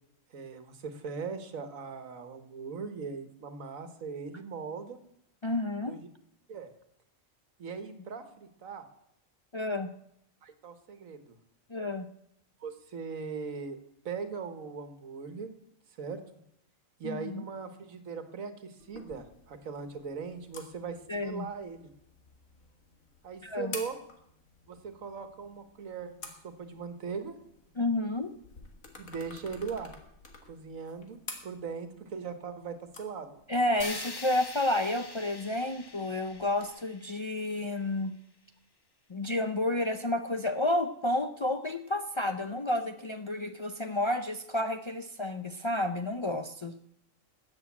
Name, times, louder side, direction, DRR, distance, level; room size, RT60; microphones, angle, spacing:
voice 1, 0.3-5.0 5.8-6.1 6.5-6.7 7.6-8.9 10.4-11.4 12.6-13.8 14.0-15.5 16.0-16.2 17.0-21.0 21.2-21.9 23.2-24.0 24.7-27.4 29.0-29.9 30.5-31.2 31.4-33.4, right 5 dB, 80° right, 9 dB, 1.7 m, -39 dB
voice 2, 5.4-6.0 9.5-9.9 11.7-12.1 17.0-17.4 21.1-21.5 23.4-23.7 27.8-28.3 33.5-38.1 39.1-46.7, left 1 dB, 45° left, 7 dB, 0.3 m, -30 dB
sound 1, 18.8-36.7, left 3 dB, 85° left, 2.2 m, -51 dB
sound 2, 33.8-37.9, left 3 dB, 20° left, 0.8 m, -44 dB
13.5 x 7.7 x 8.5 m, 0.75 s
omnidirectional pair, 1.4 m